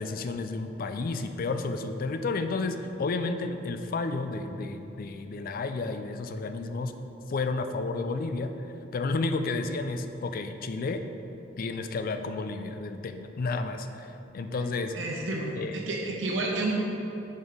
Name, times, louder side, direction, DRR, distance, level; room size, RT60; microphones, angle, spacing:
voice 1, 0.0-6.9 7.3-8.5 8.9-11.0 11.6-14.9 15.6-15.8, left 3 dB, 50° left, 8 dB, 0.4 m, -31 dB
voice 2, 14.9-16.8, right 2 dB, 75° right, -2 dB, 0.9 m, -30 dB
6.7 x 4.5 x 5.1 m, 3.0 s
head